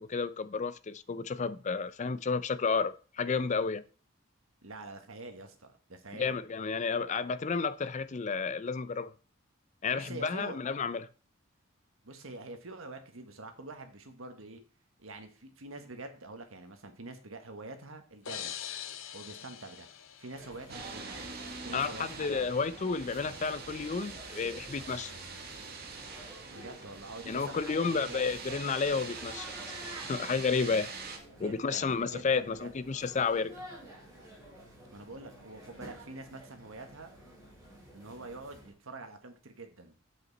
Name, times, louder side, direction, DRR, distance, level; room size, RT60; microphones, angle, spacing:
voice 1, 0.0-3.8 6.2-9.1 9.8-11.1 21.7-25.2 27.3-29.5 30.1-30.9 31.4-33.5, left 5 dB, 35° left, 0.4 m, -31 dB
voice 2, 4.6-6.4 9.9-10.6 12.0-14.6 15.0-18.5 19.1-19.9 20.2-21.2 21.6-22.5 26.5-28.4 31.3-32.7 34.9-37.1 37.9-39.9, right 2 dB, 70° right, 1.6 m, -46 dB
sound 1, 18.3-21.0, left 9 dB, 65° left, 0.8 m, -43 dB
sound 2, 20.4-38.7, equal, 15° right, 4.7 m, -51 dB
sound 3, 20.7-31.2, right 4 dB, 45° right, 1.6 m, -44 dB
8.1 x 7.8 x 4.1 m
head